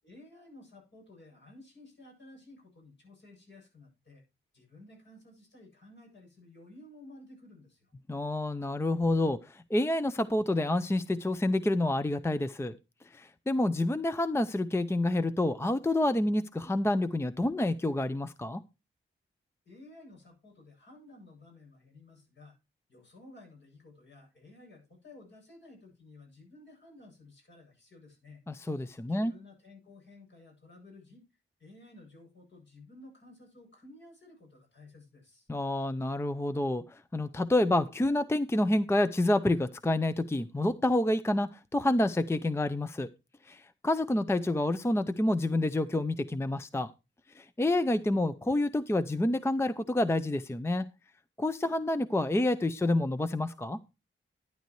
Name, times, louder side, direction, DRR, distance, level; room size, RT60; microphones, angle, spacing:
voice 1, 0.0-4.2 4.5-7.9 19.6-22.6 22.9-28.4 29.1-31.2 31.6-35.5, left 2 dB, 60° left, 1 dB, 7.9 m, -54 dB
voice 2, 8.1-12.8 13.1-18.6 28.5-29.3 35.5-43.1 43.4-46.9 47.3-50.9 51.4-53.8, left 1 dB, 10° left, 13 dB, 0.5 m, -28 dB
12.0 x 10.5 x 3.1 m, 0.26 s
wide cardioid pair, 140°, 21 cm